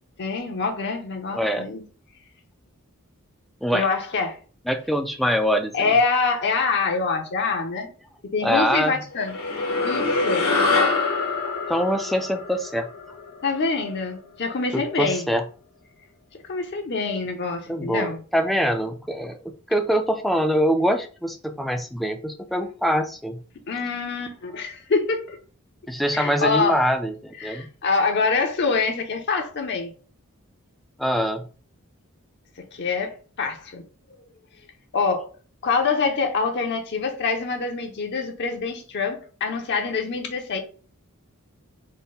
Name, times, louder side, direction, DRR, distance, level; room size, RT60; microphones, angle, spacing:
voice 1, 0.2-1.8 3.7-4.4 5.7-7.9 8.2-9.4 9.8-10.5 13.4-15.3 16.5-18.2 23.7-25.4 26.1-26.8 27.4-29.9 32.7-33.8 34.9-35.3 35.6-40.6, left 4 dB, 55° left, 0.6 m, -25 dB
voice 2, 1.3-1.7 3.6-3.9 4.7-5.9 8.4-9.0 11.5-12.9 14.7-15.4 17.7-23.4 25.9-27.7 31.0-31.5, equal, ahead, 0.3 m, -24 dB
sound 1, 9.2-13.9, left 3 dB, 85° left, 1.2 m, -25 dB
3.8 x 2.1 x 3.8 m
head